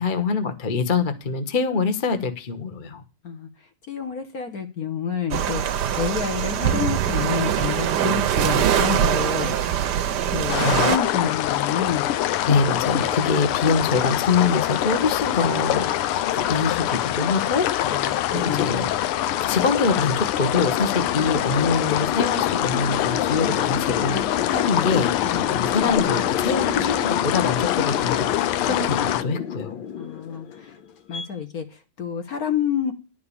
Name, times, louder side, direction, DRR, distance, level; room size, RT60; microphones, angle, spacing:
voice 1, 0.0-3.0 10.6-10.9 12.5-18.0 18.3-18.9 19.5-28.2 28.6-29.8, left 4 dB, 30° left, 8 dB, 1.0 m, -24 dB
voice 2, 3.9-9.9 10.3-12.1 17.8-18.7 25.3-25.6 30.0-30.5 31.1-31.7 32.0-32.9, left 7 dB, 50° left, 6 dB, 1.5 m, -28 dB
sound 1, 5.3-11.0, right 9 dB, 60° right, 1.2 m, -23 dB
sound 2, 10.5-29.2, left 12 dB, 85° left, 1.6 m, -24 dB
sound 3, 17.1-31.3, left 8 dB, 70° left, 1.7 m, -32 dB
11.5 x 5.1 x 8.4 m, 0.32 s
omnidirectional pair, 2.4 m